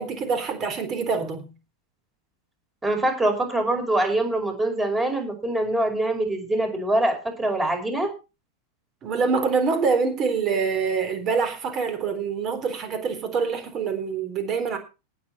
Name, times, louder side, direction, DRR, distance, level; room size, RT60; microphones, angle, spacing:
voice 1, 0.0-1.5 9.0-14.8, right 5 dB, 30° right, 3.7 m, -25 dB
voice 2, 2.8-8.1, right 1 dB, 10° right, 5.3 m, -24 dB
18.5 x 8.0 x 4.2 m
figure-of-eight pair, 90°, 0 cm